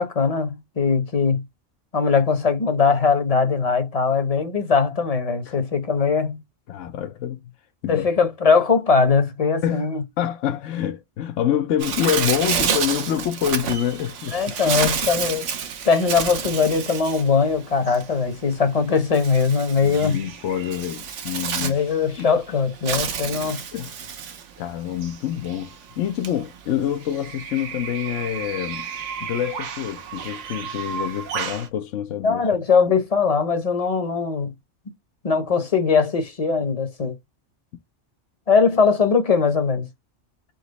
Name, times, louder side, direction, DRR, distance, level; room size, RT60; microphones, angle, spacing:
voice 1, 0.0-1.4 1.9-6.4 7.9-10.0 14.3-15.4 15.8-20.2 21.6-23.6 32.2-34.5 35.2-37.1 38.5-39.8, left 5 dB, 35° left, 0.8 m, -20 dB
voice 2, 6.7-7.4 7.8-8.0 9.6-9.9 10.2-14.4 14.7-15.2 19.8-21.8 22.2-22.3 23.7-23.9 24.6-28.9 29.2-32.4, left 10 dB, 80° left, 1.0 m, -26 dB
Bird, 11.8-31.7, right 7 dB, 75° right, 1.1 m, -30 dB
4.1 x 2.9 x 3.9 m
omnidirectional pair, 1.3 m